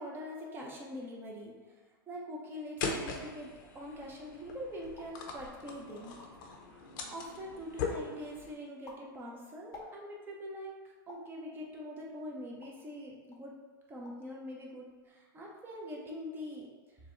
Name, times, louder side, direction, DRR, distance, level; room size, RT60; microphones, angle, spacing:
voice 1, 0.0-10.7 11.1-13.6 13.9-17.0, equal, 15° right, -2 dB, 0.8 m, -44 dB
sound 1, 2.8-8.5, left 4 dB, 60° left, 0.8 m, -40 dB
sound 2, 4.9-5.2 5.8-5.9 6.0-6.6 7.0-7.5 7.9-8.2 8.6-10.3 11.1-11.4 12.0-12.9 13.3-13.5 13.8-14.3 14.6-15.1, left 3 dB, 25° left, 0.8 m, -54 dB
6.5 x 2.3 x 3.1 m, 1.4 s
hypercardioid pair, 135°, 12 cm